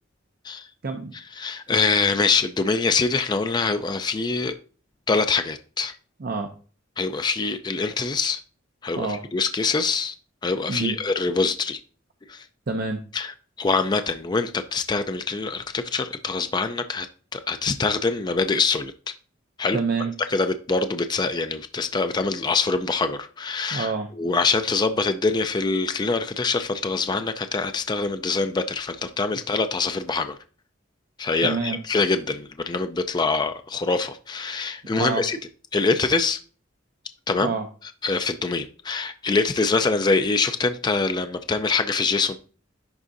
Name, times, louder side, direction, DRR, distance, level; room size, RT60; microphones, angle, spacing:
voice 1, 1.4-4.5 5.1-6.0 7.0-8.4 8.8-10.1 10.4-11.8 12.3-12.4 13.1-13.3 13.6-17.1 17.3-18.9 19.6-19.8 20.3-23.9 24.2-30.4 31.2-35.4 35.7-36.4 37.3-37.5 38.0-42.4, left 4 dB, 20° left, 8 dB, 0.4 m, -24 dB
voice 2, 6.2-6.5 9.0-9.3 10.7-11.0 12.7-13.0 19.7-20.2 23.7-24.1 31.4-31.8 35.0-35.3 37.4-37.7, right 4 dB, 50° right, 4 dB, 0.6 m, -27 dB
10.5 x 3.6 x 2.6 m, 0.38 s
head